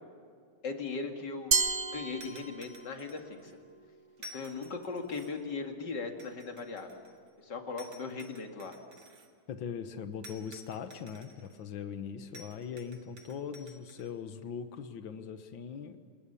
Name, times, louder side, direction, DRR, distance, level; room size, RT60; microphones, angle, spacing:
voice 1, 0.6-1.5 1.9-3.6 4.3-7.0 7.4-8.8, left 4 dB, 65° left, 3 dB, 2.8 m, -38 dB
Glass, 1.5-2.9, right 4 dB, 50° right, 0.5 m, -31 dB
sound 1, 2.2-3.5 4.2-5.5 6.2-7.3 7.8-9.3 10.2-11.6 12.3-14.1, equal, 75° right, 2.7 m, -53 dB
voice 2, 9.5-16.0, left 7 dB, 80° left, 9 dB, 1.9 m, -40 dB
29.0 x 20.0 x 7.0 m, 2.1 s
omnidirectional pair, 2.1 m